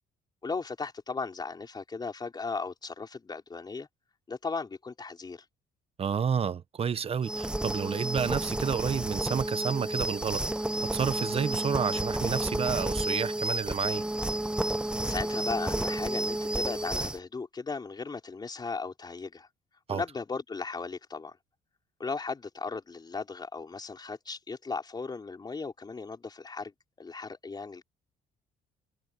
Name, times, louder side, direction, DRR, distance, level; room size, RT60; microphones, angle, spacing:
voice 1, 0.4-3.9 4.3-5.4 15.0-19.5 19.9-21.4 22.0-26.7 27.0-27.8, left 4 dB, 25° left, 4.5 m, -36 dB
voice 2, 6.0-10.4 10.9-14.0 19.9-20.0, right 7 dB, 35° right, 1.1 m, -30 dB
sound 1, 7.2-17.2, right 1 dB, 5° right, 0.8 m, -31 dB
cardioid pair, 110°, 17 cm